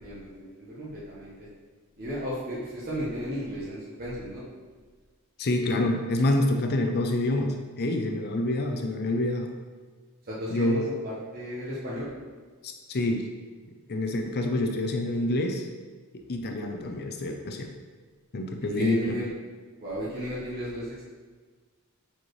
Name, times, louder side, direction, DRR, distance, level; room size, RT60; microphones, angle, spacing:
voice 1, 0.0-1.3 2.0-4.4 10.3-12.1 18.8-19.3 19.8-21.0, equal, 45° right, -8 dB, 1.1 m, -34 dB
voice 2, 5.4-9.5 10.5-10.8 12.6-13.3 13.9-15.7 16.3-17.7 18.3-19.2, left 1 dB, 45° left, 4 dB, 0.5 m, -27 dB
7.0 x 4.4 x 3.2 m, 1.4 s
head